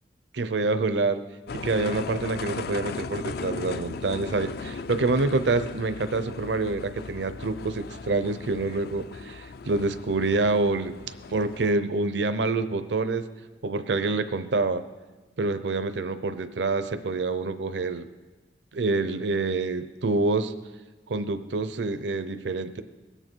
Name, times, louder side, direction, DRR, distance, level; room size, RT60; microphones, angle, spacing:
voice 1, 0.3-1.2 1.5-11.0 11.3-13.2 13.6-14.8 15.4-18.1 18.7-20.5 21.1-22.8, right 3 dB, 80° right, 11 dB, 0.7 m, -27 dB
sound 1, 1.5-11.7, left 4 dB, 60° left, 0.4 m, -37 dB
21.0 x 9.0 x 4.6 m, 1.2 s
head